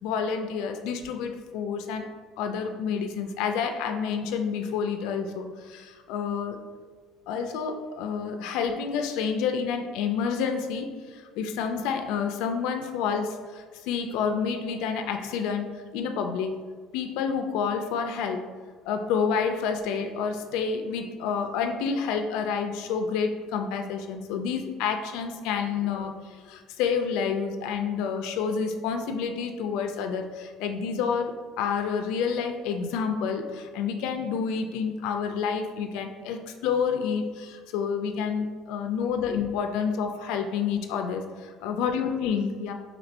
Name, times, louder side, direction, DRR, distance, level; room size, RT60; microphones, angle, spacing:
voice 1, 0.0-2.1 2.4-6.6 7.3-16.6 16.9-18.5 18.8-42.7, left 6 dB, 75° left, 5 dB, 0.3 m, -29 dB
2.8 x 2.5 x 4.1 m, 1.5 s
cardioid pair, 160°, 0 cm